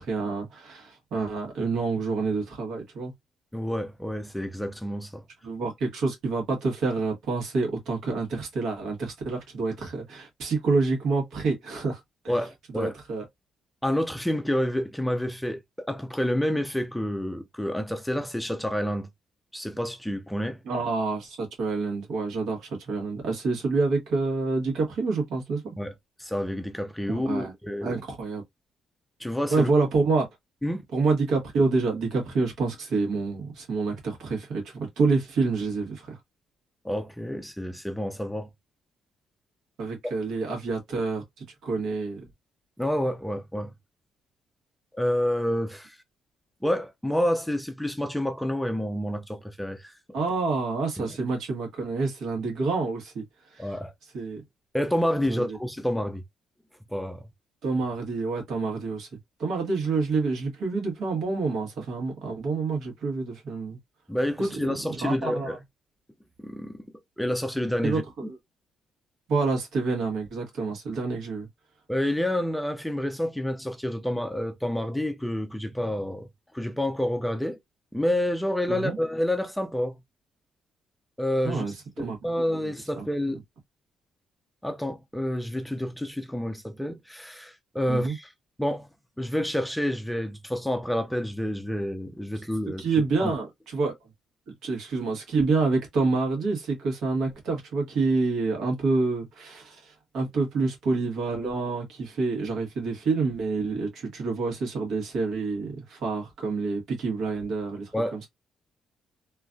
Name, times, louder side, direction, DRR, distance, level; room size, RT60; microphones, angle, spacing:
voice 1, 0.0-3.1 5.4-12.3 12.7-13.2 20.6-25.7 27.1-27.5 27.8-28.4 29.5-30.2 30.9-36.2 39.8-42.2 50.1-53.2 53.5-53.7 54.1-54.4 55.3-55.6 57.6-63.8 64.4-65.6 67.8-68.4 69.3-71.5 78.7-79.0 81.4-82.2 82.6-83.4 87.9-88.1 92.8-93.9 94.6-108.2, right 3 dB, 75° right, 1.6 m, -28 dB
voice 2, 3.5-5.2 12.3-12.9 13.8-19.1 19.5-20.6 25.8-25.9 26.2-28.0 29.2-29.7 30.6-30.8 36.8-38.5 40.0-40.1 42.8-43.7 44.9-46.0 46.6-50.0 51.0-51.2 53.6-53.9 54.7-56.2 56.9-57.2 64.1-65.6 66.4-66.8 67.2-68.0 71.9-76.3 76.5-77.6 77.9-80.0 81.2-81.6 82.0-83.4 84.6-88.3 88.6-88.9 89.2-92.8 93.2-93.3 107.9-108.3, left 1 dB, 5° left, 0.5 m, -28 dB
3.1 x 2.6 x 2.3 m
cardioid pair, 90°, 0 cm